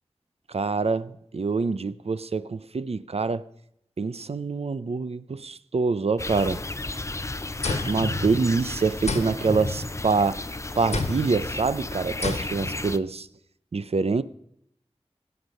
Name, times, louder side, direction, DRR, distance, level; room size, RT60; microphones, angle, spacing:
voice 1, 0.5-3.4 4.0-6.6 7.8-10.4 10.8-13.3 13.7-14.2, right 4 dB, 65° right, 0.6 m, -25 dB
sound 1, 6.2-13.0, left 2 dB, 25° left, 0.5 m, -34 dB
sound 2, 7.6-8.7 9.1-10.3 10.9-11.5 12.2-12.8, left 3 dB, 85° left, 1.2 m, -31 dB
17.0 x 8.1 x 5.4 m
wide cardioid pair, 70°, 11 cm